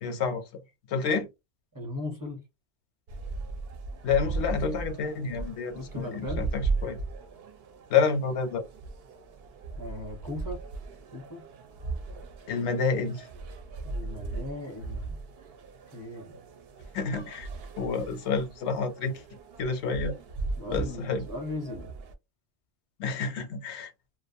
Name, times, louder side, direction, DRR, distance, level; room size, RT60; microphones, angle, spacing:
voice 1, 0.0-0.4 0.9-1.3 4.0-7.0 7.9-8.6 12.5-13.3 16.9-17.5 17.8-19.2 19.6-20.2 20.7-21.3 23.0-23.9, left 5 dB, 85° left, 0.9 m, -29 dB
voice 2, 1.7-2.4 5.7-6.4 9.8-10.6 11.1-11.4 13.8-15.2 15.9-16.3 20.6-21.9, left 2 dB, 20° right, 0.7 m, -37 dB
sound 1, 3.1-22.1, right 3 dB, 70° right, 0.8 m, -37 dB
2.5 x 2.3 x 2.6 m
omnidirectional pair, 1.1 m